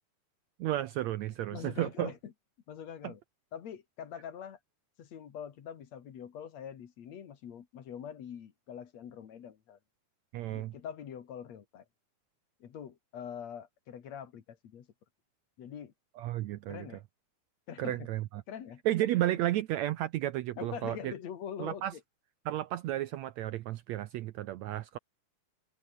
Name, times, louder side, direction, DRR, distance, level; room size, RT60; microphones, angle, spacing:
voice 1, 0.6-2.1 3.0-3.1 10.3-10.7 16.2-16.9 17.8-18.4 18.9-21.1 21.6-21.9 22.5-25.0, right 14 dB, 75° right, 1.7 m, -33 dB
voice 2, 1.5-2.3 2.7-3.2 3.5-4.6 5.0-9.8 10.5-11.8 12.6-14.9 15.6-15.9 16.7-17.0 17.7-18.1 18.5-18.8 20.6-22.0, left 8 dB, 60° left, 2.9 m, -44 dB
omnidirectional pair, 3.7 m